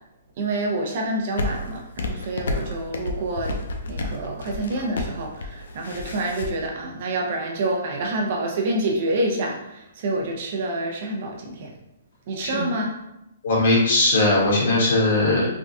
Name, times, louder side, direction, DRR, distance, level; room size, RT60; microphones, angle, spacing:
voice 1, 0.4-3.5 3.9-11.7 12.3-12.9, right 2 dB, 40° right, 0 dB, 0.6 m, -27 dB
sound 1, 1.4-6.5, left 2 dB, 80° left, 0.5 m, -30 dB
voice 2, 13.4-15.5, left 2 dB, 60° left, -5 dB, 1.5 m, -19 dB
3.5 x 2.2 x 2.6 m, 0.89 s
hypercardioid pair, 170°, 0 cm